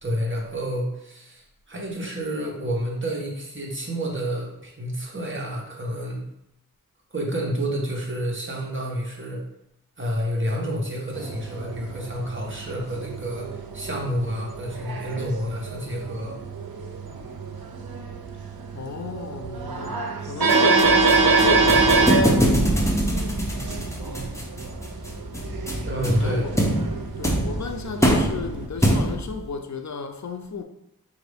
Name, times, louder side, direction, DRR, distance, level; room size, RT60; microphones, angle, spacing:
voice 1, 0.0-6.2 7.1-9.4 10.0-16.4 25.8-26.4, equal, 35° right, 1.1 m, -29 dB
sound 1, 11.1-28.7, right 3 dB, 85° right, 0.6 m, -25 dB
voice 2, 18.7-22.4 26.2-26.6 27.2-30.6, left 5 dB, 55° left, 0.4 m, -33 dB
sound 2, 20.5-29.4, equal, 10° left, 0.7 m, -24 dB
4.9 x 2.6 x 3.4 m
wide cardioid pair, 55°, 35 cm